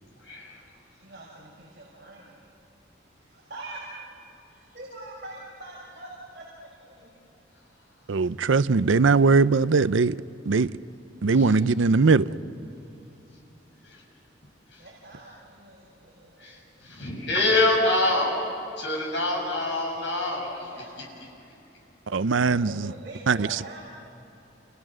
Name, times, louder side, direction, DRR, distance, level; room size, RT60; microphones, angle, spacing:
voice 1, 0.2-0.6 11.3-11.5 13.8-14.0 16.4-18.3 18.8-20.8, left 2 dB, 70° left, 7.6 m, -26 dB
voice 2, 0.9-2.4 3.3-3.8 4.5-6.4 6.8-7.1 8.0-8.2 14.8-16.6 20.6-21.1 22.2-23.8, right 2 dB, 50° right, 5.8 m, -44 dB
voice 3, 8.1-10.2 10.5-10.7 11.2-12.3 22.1-22.9 23.3-23.5, right 4 dB, 90° right, 0.6 m, -20 dB
30.0 x 29.5 x 6.3 m
head